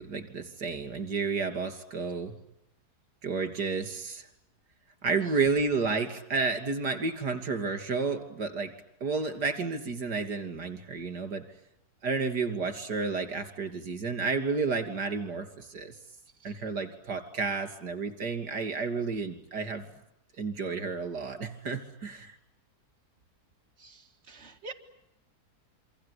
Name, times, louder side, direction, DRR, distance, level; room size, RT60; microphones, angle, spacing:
voice 1, 0.0-2.3 3.2-4.3 5.0-8.7 9.0-11.4 12.0-16.0 16.4-19.9 20.4-22.4, right 4 dB, 85° right, 9 dB, 3.3 m, -31 dB
voice 2, 23.8-24.7, right 3 dB, 40° right, 3 dB, 2.4 m, -46 dB
27.0 x 24.0 x 8.4 m, 0.80 s
omnidirectional pair, 1.7 m